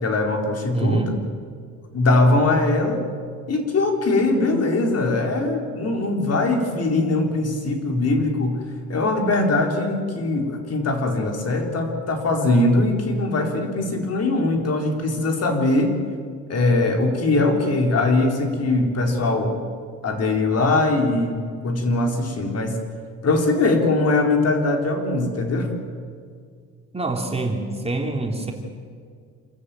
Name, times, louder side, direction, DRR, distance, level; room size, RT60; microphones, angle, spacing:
voice 1, 0.0-1.1 1.9-3.0 3.5-8.6 8.9-15.9 16.5-19.6 20.0-22.8 23.2-25.7, left 2 dB, 55° left, 3 dB, 4.1 m, -21 dB
voice 2, 0.7-1.1 26.9-28.5, right 3 dB, 20° right, 2 dB, 3.1 m, -25 dB
27.0 x 14.0 x 9.1 m, 2.1 s
cardioid pair, 90°, 30 cm